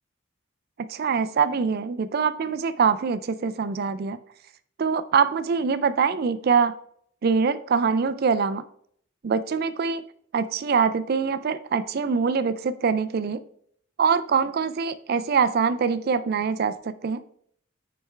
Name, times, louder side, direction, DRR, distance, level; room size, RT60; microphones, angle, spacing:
voice 1, 0.9-4.2 4.8-6.7 7.2-8.6 9.2-10.0 10.3-13.4 14.0-17.2, right 5 dB, 50° right, 13 dB, 0.4 m, -24 dB
9.4 x 3.4 x 3.2 m, 0.65 s
head